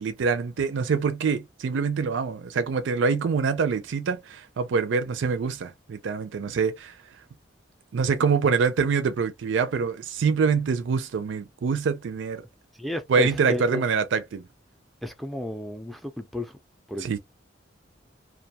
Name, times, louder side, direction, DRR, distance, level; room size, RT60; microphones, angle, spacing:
voice 1, 0.0-7.0 7.9-12.4 13.1-14.4 17.0-17.2, right 5 dB, 80° right, 0.4 m, -25 dB
voice 2, 12.8-13.8 15.0-16.6 16.9-17.2, left 1 dB, ahead, 0.3 m, -32 dB
2.3 x 2.2 x 2.7 m
head